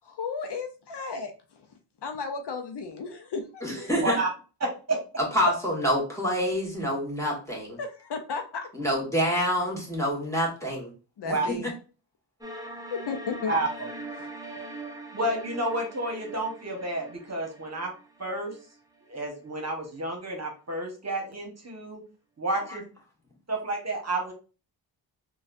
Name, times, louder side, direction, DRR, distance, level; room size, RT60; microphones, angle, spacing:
voice 1, 0.0-1.3 2.0-3.6 7.8-8.4 11.2-11.7 12.9-13.6 14.2-14.3 14.6-14.7, left 4 dB, 65° left, 5 dB, 0.7 m, -34 dB
voice 2, 3.6-4.2 5.3-7.8 8.7-10.9 11.3-11.7 22.7-22.8, equal, 5° left, -3 dB, 1.6 m, -27 dB
sound 1, 12.4-19.4, right 1 dB, 10° right, 0.7 m, -42 dB
voice 3, 13.5-13.9 15.1-17.9 18.2-18.5 19.1-22.0 22.4-22.8 23.5-24.3, right 2 dB, 35° right, 1 dB, 1.2 m, -30 dB
4.0 x 2.4 x 2.5 m, 0.34 s
cardioid pair, 75°, 44 cm